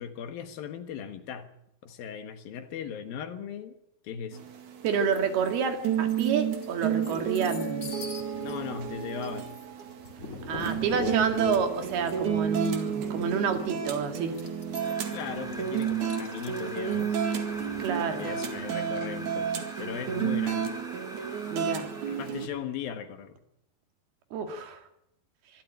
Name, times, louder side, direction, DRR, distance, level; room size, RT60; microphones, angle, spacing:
voice 1, 0.0-1.5 1.8-3.8 4.0-4.5 8.4-9.6 15.1-17.3 18.0-19.5 19.8-20.8 22.1-23.4, left 8 dB, 70° left, 9 dB, 3.2 m, -38 dB
sound 1, 4.3-22.5, right 8 dB, 55° right, 3.3 m, -31 dB
voice 2, 4.8-8.1 10.5-14.4 17.8-18.3 20.1-20.4 21.5-21.9 24.3-24.8, right 6 dB, 80° right, 6 dB, 4.2 m, -29 dB
sound 2, 5.1-5.5 5.9-19.2, left 3 dB, 25° left, 2.4 m, -44 dB
sound 3, 14.7-22.4, equal, ahead, 2.0 m, -44 dB
24.5 x 13.0 x 9.0 m, 0.78 s
omnidirectional pair, 4.4 m